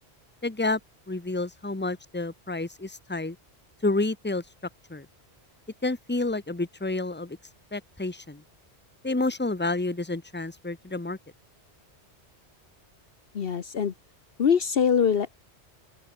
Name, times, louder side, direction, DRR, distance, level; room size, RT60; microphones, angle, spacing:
voice 1, 0.4-0.8 1.1-3.4 3.8-4.4 4.9-5.1 5.8-7.4 7.7-8.4 9.0-11.2, left 2 dB, 10° left, 1.3 m, -29 dB
voice 2, 13.3-13.9 14.4-15.4, left 7 dB, 60° left, 1.1 m, -23 dB
open air
omnidirectional pair, 1.1 m